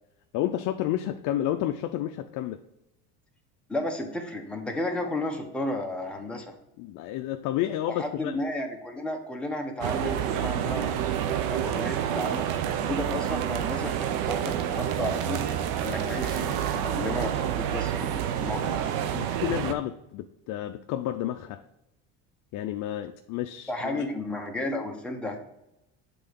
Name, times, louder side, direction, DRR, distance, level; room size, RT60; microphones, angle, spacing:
voice 1, 0.3-2.6 6.8-8.4 19.1-21.6 22.5-24.1, left 12 dB, 55° left, 6 dB, 0.5 m, -30 dB
voice 2, 3.7-6.5 7.9-12.5 12.8-18.9 23.7-25.4, left 1 dB, 5° left, 1 dB, 1.1 m, -33 dB
sound 1, 9.8-19.7, right 9 dB, 75° right, 0.8 m, -28 dB
7.9 x 3.8 x 5.2 m, 0.88 s
cardioid pair, 125°, 35 cm